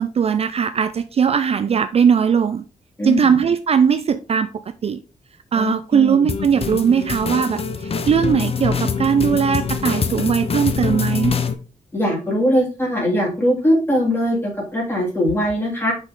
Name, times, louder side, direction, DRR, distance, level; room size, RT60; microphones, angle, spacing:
voice 1, 0.0-2.6 3.0-4.5 4.8-5.0 5.5-11.4, right 7 dB, 45° right, 0.4 m, -19 dB
voice 2, 5.5-6.2 11.9-15.9, equal, 15° left, 3.3 m, -21 dB
sound 1, 6.3-11.5, left 5 dB, 45° left, 0.7 m, -24 dB
6.4 x 5.4 x 3.6 m
wide cardioid pair, 155°, 14 cm